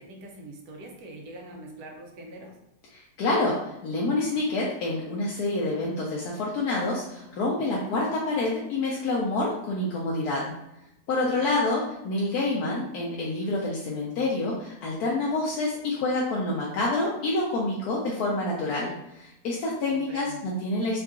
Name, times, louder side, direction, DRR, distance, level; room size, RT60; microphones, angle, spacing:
voice 1, 0.0-2.6 11.2-11.5 19.9-20.4, right 1 dB, 90° right, 1 dB, 1.2 m, -43 dB
voice 2, 2.9-10.4 11.1-21.0, left 2 dB, 75° left, -4 dB, 1.1 m, -27 dB
3.6 x 2.3 x 2.3 m, 0.87 s
omnidirectional pair, 1.7 m